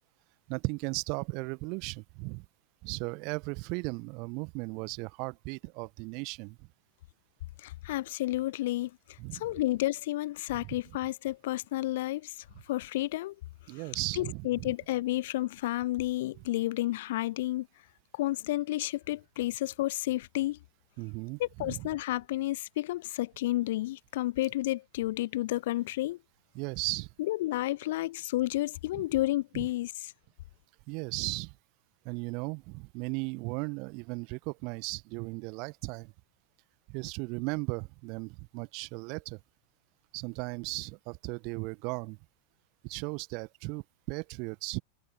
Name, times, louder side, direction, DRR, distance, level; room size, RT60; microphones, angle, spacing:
voice 1, 0.5-2.4 2.8-6.6 9.2-9.5 10.5-10.8 13.7-14.7 21.0-21.9 26.5-27.1 28.9-29.0 29.5-29.7 30.9-31.5 32.0-36.1 36.9-39.4 40.1-42.2 42.8-44.8, right 31 dB, 45° right, 1.4 m, -36 dB
voice 2, 7.6-13.4 13.7-13.8 14.1-17.7 18.1-20.6 21.4-26.2 27.2-30.1, left 16 dB, 55° left, 0.5 m, -31 dB
figure-of-eight pair, 90°, 0 cm